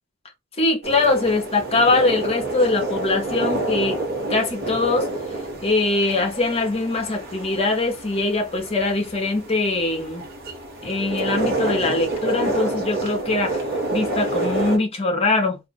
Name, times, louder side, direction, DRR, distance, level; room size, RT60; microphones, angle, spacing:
voice 1, 0.6-4.0 4.3-5.1 5.6-10.2 10.8-13.6 13.9-15.6, left 2 dB, 30° left, 0.9 m, -22 dB
sound 1, 0.8-14.8, right 2 dB, 50° right, 1.2 m, -28 dB
2.7 x 2.4 x 3.9 m
head